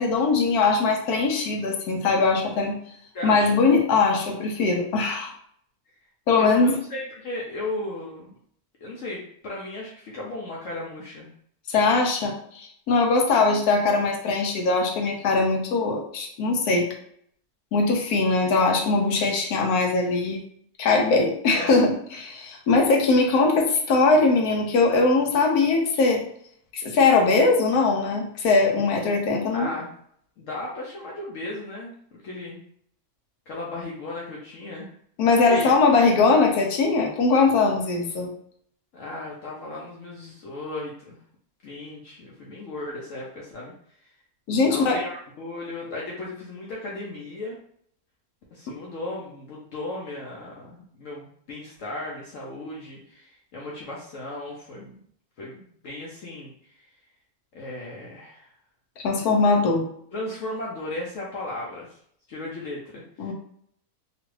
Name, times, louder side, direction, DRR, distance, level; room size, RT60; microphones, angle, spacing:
voice 1, 0.0-2.8 3.2-5.3 6.3-6.8 11.7-16.9 17.7-20.4 20.8-26.2 26.7-29.7 35.2-38.3 44.5-45.0 59.0-59.8 63.2-63.3, left 3 dB, 90° left, 2 dB, 1.2 m, -21 dB
voice 2, 3.1-3.7 6.3-8.4 8.8-11.3 21.5-21.8 29.5-29.9 30.4-32.6 33.5-34.9 35.5-35.7 38.9-41.2 41.6-43.7 44.7-47.6 48.5-55.0 55.4-56.5 57.5-58.5 60.1-61.9 62.3-63.3, left 2 dB, 65° left, -4 dB, 0.9 m, -35 dB
2.9 x 2.4 x 3.1 m, 0.64 s
omnidirectional pair, 1.6 m